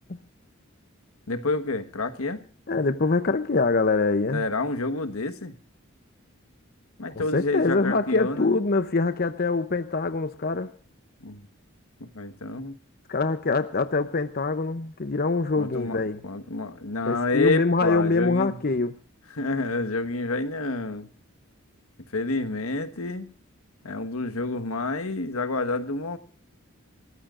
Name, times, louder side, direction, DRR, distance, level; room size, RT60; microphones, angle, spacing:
voice 1, 1.3-2.4 4.3-5.6 7.0-8.6 11.2-11.5 12.0-12.8 15.6-18.6 19.3-21.1 22.1-23.3 23.8-26.2, left 3 dB, 85° left, 1.4 m, -29 dB
voice 2, 2.7-4.4 7.2-10.7 13.1-16.2 17.1-18.9, left 3 dB, 45° left, 0.7 m, -24 dB
28.0 x 14.5 x 2.5 m
head